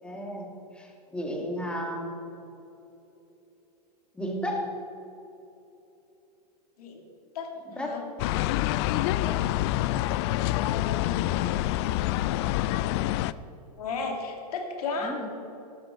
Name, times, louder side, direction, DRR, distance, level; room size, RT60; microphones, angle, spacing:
voice 1, 0.0-0.5 0.7-2.2 4.1-4.7 7.8-8.0 9.2-9.6 15.0-15.3, equal, 5° left, 0 dB, 2.5 m, -33 dB
voice 2, 7.3-8.1 10.7-11.5 13.8-15.2, left 4 dB, 70° left, 3 dB, 2.8 m, -34 dB
sound 1, 8.2-13.3, left 15 dB, 40° left, 0.4 m, -26 dB
13.5 x 12.5 x 4.6 m, 2.9 s
hypercardioid pair, 130°, 20 cm